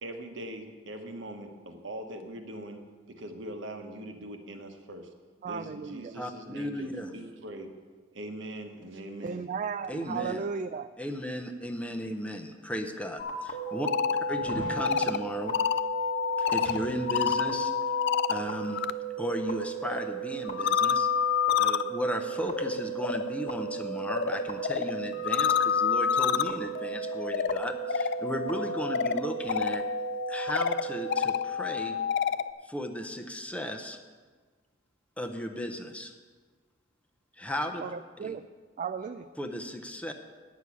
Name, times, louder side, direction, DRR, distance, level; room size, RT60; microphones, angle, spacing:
voice 1, 0.0-2.8 3.1-5.1 5.5-7.7 8.1-9.5, right 1 dB, 65° right, 5 dB, 1.2 m, -41 dB
voice 2, 5.4-6.1 9.2-10.9 37.8-38.4 38.8-39.2, right 6 dB, 40° right, 9 dB, 0.3 m, -35 dB
voice 3, 6.2-7.1 9.9-10.4 11.0-13.9 14.3-15.5 16.4-17.7 18.3-18.8 19.2-21.1 21.6-32.0 32.7-34.0 35.2-36.1 37.4-37.8 38.2-38.4 39.4-40.1, equal, 5° left, 4 dB, 0.7 m, -35 dB
sound 1, 12.3-12.4 13.1-13.2 14.3-14.8 16.6-17.3 17.6-17.7, equal, 85° right, 1.7 m, -42 dB
sound 2, 13.2-31.2, right 12 dB, 35° left, 1.0 m, -37 dB
sound 3, 13.7-18.9 19.2-32.5, left 8 dB, 60° left, 0.3 m, -30 dB
9.5 x 6.1 x 8.3 m, 1.5 s
head